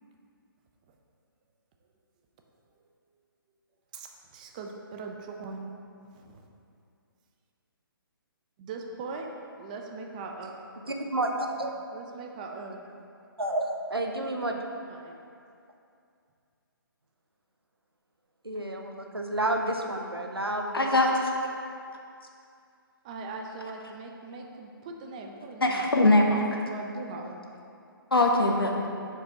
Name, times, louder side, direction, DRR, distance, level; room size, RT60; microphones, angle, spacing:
voice 1, 3.9-5.7 6.1-6.4 8.6-9.3 9.6-10.6 11.9-12.8 14.9-15.1 18.5-18.6 23.0-26.1 26.7-27.4, right 3 dB, 20° right, 2 dB, 0.4 m, -40 dB
voice 2, 10.8-11.7 13.4-14.6 18.4-20.9, right 1 dB, 85° right, 2 dB, 0.7 m, -30 dB
voice 3, 20.7-21.1 25.6-26.4 28.1-28.9, left 2 dB, 75° left, 1 dB, 0.9 m, -22 dB
5.0 x 4.6 x 4.4 m, 2.4 s
figure-of-eight pair, 135°, 12 cm